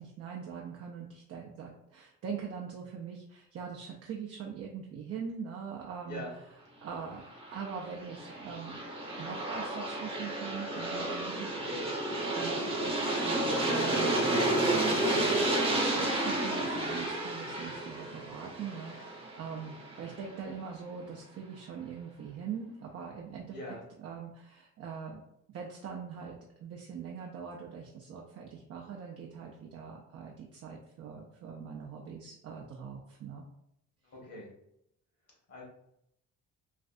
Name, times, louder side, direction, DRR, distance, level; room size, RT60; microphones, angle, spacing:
voice 1, 0.0-6.2 6.8-7.2 7.5-8.8 9.2-11.5 12.3-23.6 24.0-25.2 25.5-33.4, right 6 dB, 55° right, 0 dB, 0.5 m, -42 dB
Aircraft, 7.3-20.1, right 1 dB, 20° right, 0.7 m, -31 dB
voice 2, 11.5-11.9 23.5-23.8 34.0-34.5 35.5-35.6, left 1 dB, 55° left, -3 dB, 1.5 m, -42 dB
3.2 x 2.5 x 2.5 m, 0.78 s
cardioid pair, 90°, 30 cm